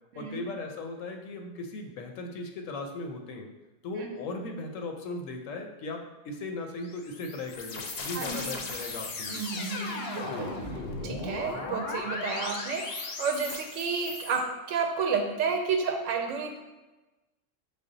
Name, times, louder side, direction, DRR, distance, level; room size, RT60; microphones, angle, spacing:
voice 1, 0.2-3.5 3.8-9.4 10.2-10.5, left 2 dB, 85° left, 3 dB, 1.0 m, -38 dB
sound 1, 6.8-14.4, left 3 dB, 60° left, 0.7 m, -37 dB
voice 2, 8.1-8.5 9.3-10.6 11.0-16.6, right 5 dB, 85° right, 4 dB, 1.0 m, -31 dB
5.2 x 2.0 x 3.8 m, 1.1 s
omnidirectional pair, 1.3 m